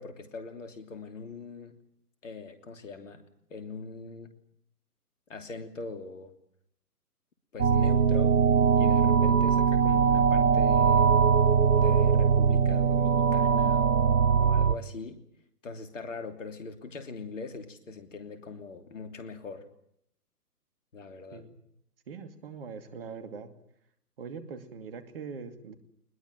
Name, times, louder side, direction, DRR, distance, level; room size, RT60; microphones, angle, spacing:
voice 1, 0.0-1.7 2.2-3.2 3.5-4.3 5.3-6.3 7.5-8.4 8.8-11.1 11.8-15.2 15.6-19.6 20.9-21.4, left 4 dB, 50° left, 7 dB, 3.0 m, -41 dB
sound 1, 7.6-14.7, right 6 dB, 70° right, 1.0 m, -22 dB
voice 2, 22.1-23.5 24.2-25.8, right 5 dB, 35° right, 8 dB, 2.5 m, -42 dB
21.5 x 21.0 x 9.0 m, 0.74 s
figure-of-eight pair, 135°, 47 cm